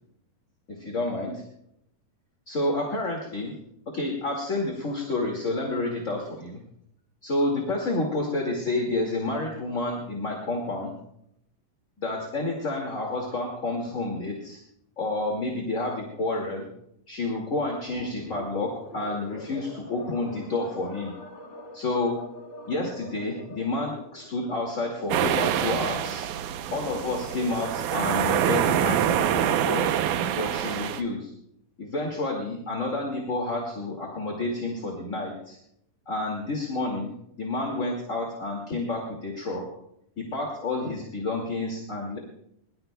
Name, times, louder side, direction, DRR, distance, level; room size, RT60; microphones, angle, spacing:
voice 1, 0.8-1.4 2.5-3.5 3.9-6.6 7.2-10.9 12.0-14.6 15.0-16.7 17.1-21.1 21.7-22.2 22.7-26.3 26.7-29.9 30.4-31.3 31.8-35.6 36.1-39.7 40.2-42.2, left 2 dB, 25° left, 0 dB, 2.1 m, -29 dB
sound 1, 17.8-24.3, left 2 dB, 60° left, 5.8 m, -43 dB
sound 2, 25.1-31.0, right 10 dB, 75° right, 2.2 m, -26 dB
22.0 x 21.0 x 2.3 m, 0.75 s
omnidirectional pair, 3.8 m